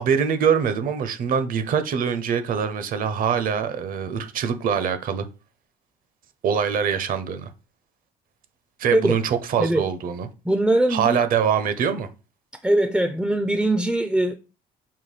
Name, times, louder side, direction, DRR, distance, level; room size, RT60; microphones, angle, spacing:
voice 1, 0.0-5.3 6.4-7.5 8.8-10.3 10.9-12.1, right 7 dB, 55° right, 0.6 m, -23 dB
voice 2, 10.4-11.2 12.6-14.3, right 1 dB, 5° right, 0.4 m, -21 dB
5.5 x 2.2 x 3.2 m
cardioid pair, 110°, 17 cm